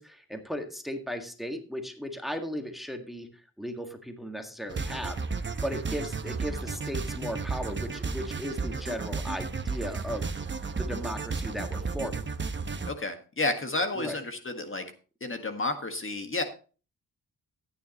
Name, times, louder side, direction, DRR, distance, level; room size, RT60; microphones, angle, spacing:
voice 1, 0.0-3.3 3.6-5.2 5.6-10.3 10.8-12.2 14.0-14.2, equal, ahead, 5 dB, 1.8 m, -36 dB
sound 1, 4.7-12.9, right 4 dB, 30° right, 1.0 m, -33 dB
voice 2, 12.9-14.9 15.2-16.4, left 2 dB, 35° left, 6 dB, 1.7 m, -31 dB
14.0 x 9.5 x 3.0 m, 0.36 s
cardioid pair, 80°, 36 cm